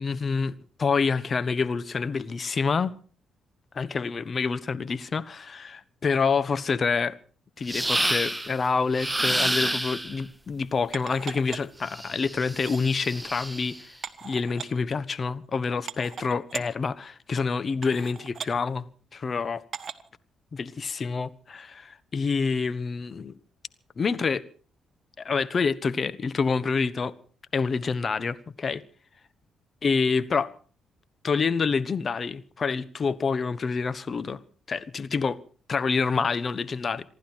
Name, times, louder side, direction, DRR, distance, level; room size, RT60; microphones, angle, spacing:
voice 1, 0.0-2.9 3.7-7.2 7.6-13.9 14.2-18.8 19.1-19.6 20.5-23.3 24.0-24.4 25.2-27.1 27.5-28.8 29.8-30.5 31.2-34.4 34.7-35.4 35.7-37.0, left 5 dB, 45° left, 1.2 m, -27 dB
sound 1, 7.7-8.5 8.9-10.2 11.9-13.8, right 1 dB, 10° right, 0.7 m, -29 dB
sound 2, 10.9-11.8 12.5-12.8 14.0-14.7 15.4-15.5 15.9-16.7 17.3-17.4 17.8-18.5 19.7-20.1 20.7-20.8, right 7 dB, 50° right, 1.3 m, -38 dB
27.0 x 11.5 x 4.6 m
hypercardioid pair, 50°, 0 cm